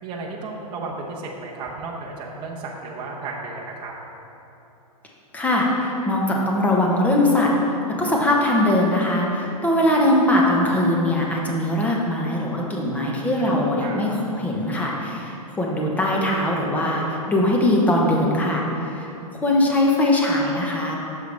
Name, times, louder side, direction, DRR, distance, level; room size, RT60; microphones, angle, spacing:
voice 1, 0.0-3.9 13.1-14.0, right 3 dB, 25° right, -2 dB, 0.9 m, -34 dB
voice 2, 5.3-21.0, left 1 dB, 10° left, -2 dB, 1.0 m, -21 dB
9.1 x 6.6 x 3.5 m, 2.9 s
hypercardioid pair, 140°, 19 cm